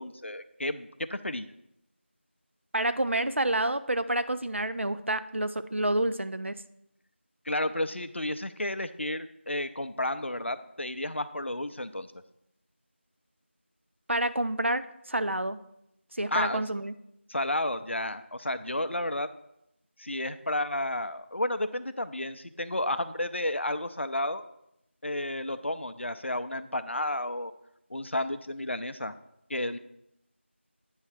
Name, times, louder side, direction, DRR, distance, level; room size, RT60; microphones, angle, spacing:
voice 1, 0.0-1.5 7.5-12.1 16.3-16.6 17.3-19.3 20.0-24.4 25.0-27.5 27.9-29.1 29.5-29.8, left 1 dB, 70° left, 11 dB, 0.5 m, -32 dB
voice 2, 2.7-6.6 14.1-15.6 16.1-16.9, right 1 dB, 70° right, 11 dB, 0.5 m, -28 dB
9.0 x 3.2 x 6.0 m, 0.81 s
figure-of-eight pair, 175°, 7 cm